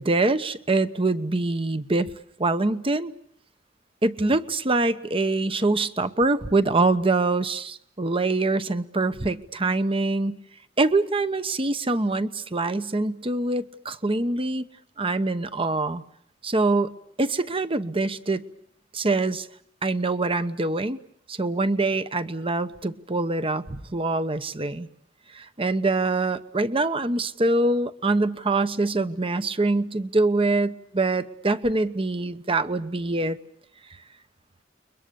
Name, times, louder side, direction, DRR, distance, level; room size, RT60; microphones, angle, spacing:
voice 1, 0.0-2.1 2.4-3.1 4.0-10.4 10.8-14.7 15.0-16.0 16.4-18.4 18.9-19.5 19.8-21.0 21.3-24.9 25.3-33.4, right 2 dB, 30° right, 12 dB, 1.0 m, -24 dB
30.0 x 22.5 x 7.0 m, 0.65 s
head